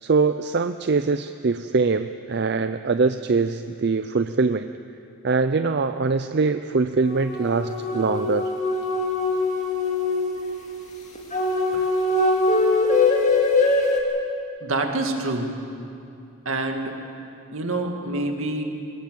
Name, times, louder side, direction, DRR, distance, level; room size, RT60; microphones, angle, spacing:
voice 1, 0.0-4.7 5.2-8.5 11.7-11.9, right 4 dB, 50° right, 10 dB, 0.5 m, -23 dB
sound 1, 7.0-14.0, left 3 dB, 35° left, 2.4 m, -22 dB
voice 2, 14.6-15.5 16.5-17.0 17.5-18.6, right 2 dB, 70° right, 3 dB, 2.2 m, -26 dB
21.5 x 19.0 x 7.7 m, 2.6 s
head